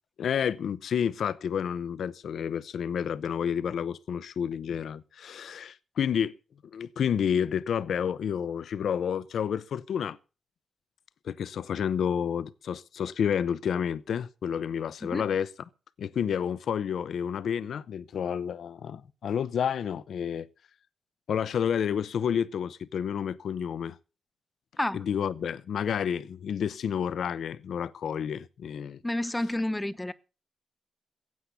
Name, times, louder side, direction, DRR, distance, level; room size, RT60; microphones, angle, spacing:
voice 1, 0.2-6.3 6.6-10.2 11.2-15.5 16.0-20.5 21.3-24.0 24.9-29.0, left 8 dB, 85° left, 0.6 m, -30 dB
voice 2, 29.0-30.1, left 1 dB, 15° left, 1.0 m, -30 dB
16.0 x 8.3 x 6.8 m
cardioid pair, 75°, 0 cm